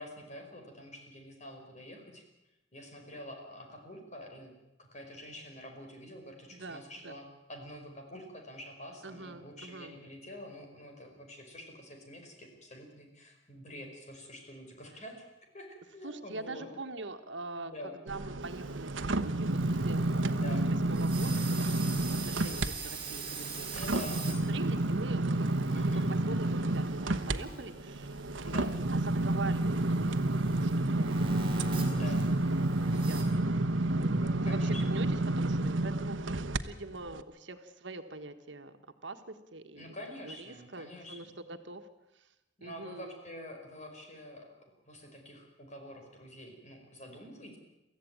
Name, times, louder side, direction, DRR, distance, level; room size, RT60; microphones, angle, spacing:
voice 1, 0.0-2.2 2.7-4.5 4.8-15.2 15.5-16.7 17.5-18.0 20.3-20.7 23.7-24.2 25.7-26.1 28.4-28.7 31.9-32.3 34.2-34.8 39.8-41.4 42.6-44.5 44.8-47.6, left 1 dB, 40° left, 2 dB, 5.1 m, -47 dB
voice 2, 6.5-7.1 9.0-10.0 16.0-17.7 18.0-20.5 20.8-23.7 24.0-28.2 28.4-31.3 32.0-32.4 32.8-33.3 33.9-39.9 40.2-41.9 42.1-42.3 42.6-43.2, right 3 dB, 70° right, 7 dB, 1.7 m, -44 dB
sound 1, 18.1-22.7 23.1-36.6 37.1-37.2, right 2 dB, 90° right, 1.0 m, -30 dB
sound 2, 18.4-33.2, right 4 dB, 30° right, 5.0 m, -44 dB
24.0 x 15.0 x 9.0 m, 0.95 s
head